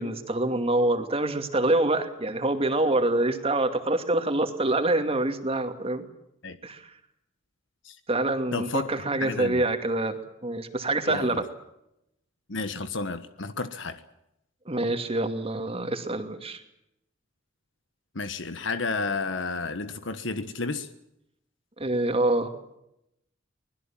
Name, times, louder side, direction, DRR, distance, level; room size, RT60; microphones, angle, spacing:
voice 1, 0.0-6.0 6.6-6.9 8.1-11.5 14.7-16.6 21.8-22.5, right 2 dB, 30° right, 7 dB, 2.5 m, -26 dB
voice 2, 8.5-8.9 9.2-9.6 11.1-11.4 12.5-14.0 18.1-20.9, left 3 dB, 70° left, 11 dB, 1.3 m, -31 dB
25.0 x 20.5 x 7.5 m, 0.82 s
head